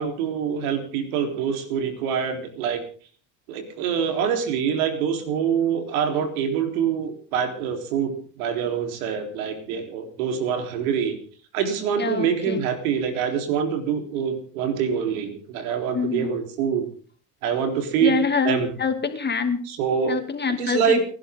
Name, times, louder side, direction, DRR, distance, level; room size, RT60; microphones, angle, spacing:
voice 1, 0.0-2.8 3.5-11.2 11.5-16.9 17.4-18.7 19.7-20.2 20.6-21.0, right 7 dB, 85° right, 5 dB, 3.9 m, -25 dB
voice 2, 12.0-12.6 15.9-16.3 18.0-19.6 20.1-21.0, left 5 dB, 25° left, 6 dB, 2.6 m, -25 dB
29.5 x 11.0 x 3.8 m, 0.43 s
supercardioid pair, 95°, 41 cm